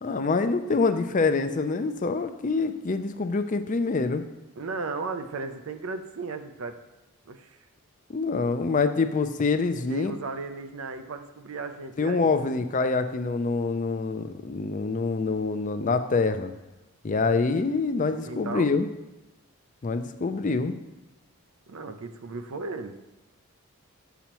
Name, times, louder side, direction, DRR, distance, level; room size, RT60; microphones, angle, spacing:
voice 1, 0.0-4.2 8.1-10.2 12.0-16.5 17.0-18.9 19.8-20.8, left 4 dB, 35° left, 9 dB, 0.4 m, -26 dB
voice 2, 4.6-6.8 7.3-7.6 9.9-12.3 18.1-18.8 21.7-22.9, right 3 dB, 70° right, 9 dB, 0.6 m, -35 dB
8.5 x 6.9 x 3.0 m, 1.1 s
head